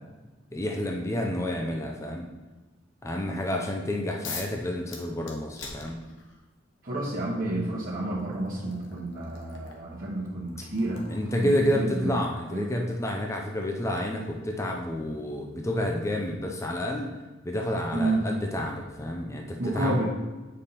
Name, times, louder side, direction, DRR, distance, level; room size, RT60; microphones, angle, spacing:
voice 1, 0.5-2.3 3.0-6.0 11.1-17.1 17.4-20.0, left 1 dB, 15° left, 1 dB, 0.6 m, -29 dB
sound 1, 4.2-4.6 4.9-6.5 7.6-7.7 8.2-14.9, left 5 dB, 65° left, 1.2 m, -45 dB
voice 2, 6.8-11.1 11.4-12.2 12.5-12.7 17.9-18.2 19.6-20.0, right 2 dB, 45° right, -7 dB, 1.2 m, -30 dB
8.3 x 5.4 x 4.1 m, 1.2 s
head